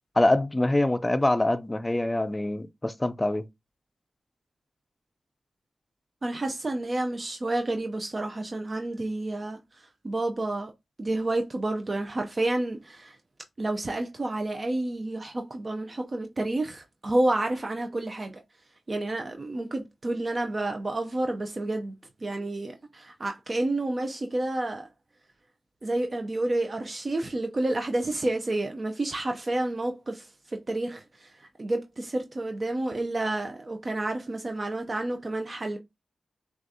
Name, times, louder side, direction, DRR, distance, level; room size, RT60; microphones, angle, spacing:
voice 1, 0.2-3.5, left 1 dB, 20° left, 0.5 m, -24 dB
voice 2, 6.2-9.6 10.0-10.7 11.0-13.2 13.6-18.3 18.9-21.9 22.2-24.9 25.8-30.3 30.7-31.0 31.6-35.8, right 2 dB, 40° right, 0.6 m, -29 dB
6.1 x 2.4 x 2.7 m
cardioid pair, 60°, 0 cm